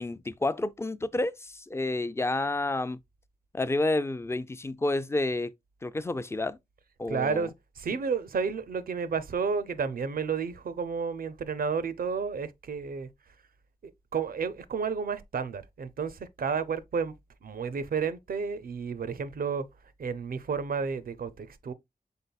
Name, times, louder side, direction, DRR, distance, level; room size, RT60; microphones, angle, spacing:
voice 1, 0.0-3.0 3.5-5.5 5.8-6.6 7.0-7.5, left 2 dB, 15° left, 0.3 m, -30 dB
voice 2, 7.1-13.1 14.1-17.1 17.4-19.7 20.0-21.7, right 5 dB, 75° right, 0.5 m, -31 dB
5.4 x 3.9 x 2.3 m
wide cardioid pair, 75°, 15 cm